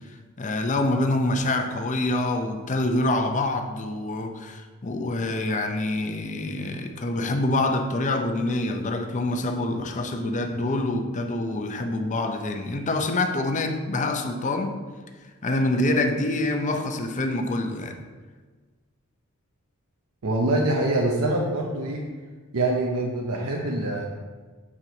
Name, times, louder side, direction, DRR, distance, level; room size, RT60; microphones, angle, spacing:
voice 1, 0.4-14.7 15.4-18.0, left 2 dB, 35° left, 0.6 m, -26 dB
voice 2, 20.2-22.0 22.5-24.0, right 2 dB, 85° right, 0.7 m, -24 dB
7.1 x 4.5 x 3.9 m
head